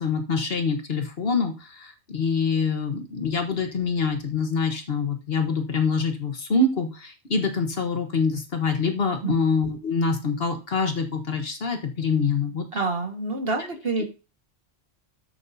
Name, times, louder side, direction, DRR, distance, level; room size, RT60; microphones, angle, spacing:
voice 1, 0.0-12.7, left 4 dB, 55° left, 5 dB, 1.4 m, -25 dB
voice 2, 12.7-14.0, right 3 dB, 50° right, 4 dB, 1.8 m, -27 dB
13.0 x 7.8 x 2.7 m, 0.31 s
omnidirectional pair, 1.3 m